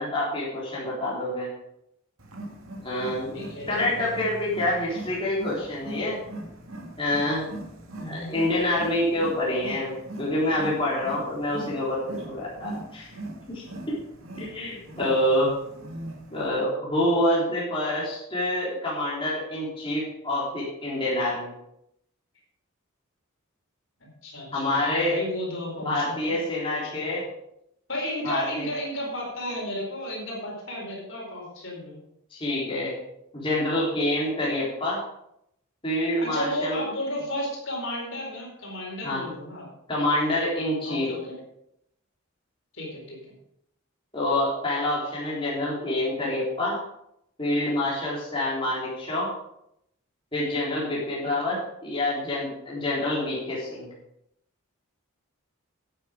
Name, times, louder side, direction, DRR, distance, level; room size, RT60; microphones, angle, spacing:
voice 1, 0.0-1.5 2.8-3.3 3.7-6.2 7.0-7.5 8.1-13.1 13.5-13.6 14.4-15.5 16.3-21.5 24.5-25.2 25.8-27.2 28.2-28.7 32.3-32.9 33.3-35.0 35.8-36.8 39.0-39.2 39.9-41.1 44.1-46.8 47.4-49.3 50.3-53.9, left 1 dB, 25° left, -7 dB, 3.7 m, -27 dB
Wild animals, 2.2-16.5, right 1 dB, 80° right, 2.0 m, -41 dB
voice 2, 3.3-4.0 8.0-8.5 24.0-26.4 26.6-27.2 27.9-32.0 36.2-39.7 40.8-41.4 42.7-43.2 51.2-51.5, left 1 dB, 65° left, -2 dB, 4.5 m, -33 dB
12.0 x 8.3 x 5.2 m, 0.78 s
head